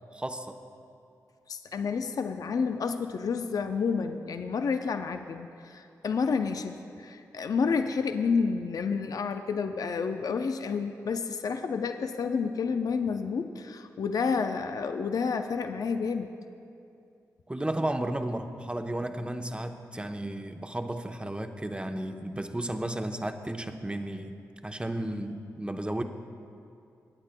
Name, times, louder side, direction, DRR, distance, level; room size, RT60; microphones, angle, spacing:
voice 1, 0.1-0.6 17.5-24.4 24.6-26.0, right 1 dB, 15° right, 6 dB, 0.8 m, -33 dB
voice 2, 1.5-16.3, left 5 dB, 65° left, 7 dB, 0.5 m, -30 dB
25.0 x 8.8 x 2.2 m, 2.5 s
supercardioid pair, 45°, 7 cm